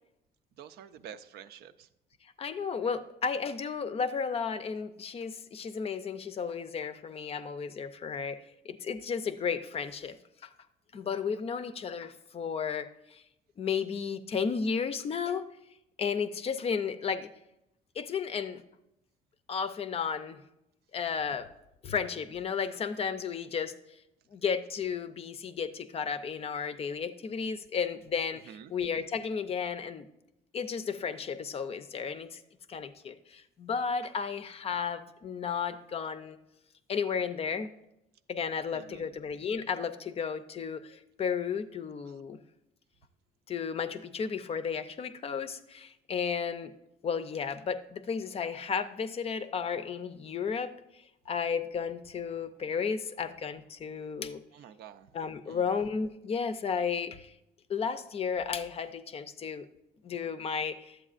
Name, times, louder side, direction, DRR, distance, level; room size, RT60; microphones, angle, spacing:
voice 1, 0.6-1.9 28.5-28.7 38.7-39.2 42.1-42.2 54.5-55.1 55.4-55.6, right 9 dB, 70° right, 10 dB, 0.4 m, -49 dB
voice 2, 2.4-10.2 10.4-10.5 10.9-13.2 13.6-15.4 16.0-17.3 18.0-18.6 19.5-20.4 20.9-21.5 21.8-23.7 24.3-30.0 30.5-32.4 32.7-36.4 36.9-37.7 38.3-42.4 43.5-46.7 47.0-50.7 51.3-54.4 55.1-57.3 57.7-59.7 60.0-61.0, left 6 dB, 35° left, 11 dB, 0.5 m, -33 dB
11.0 x 7.9 x 2.4 m, 0.87 s
cardioid pair, 110°, 17 cm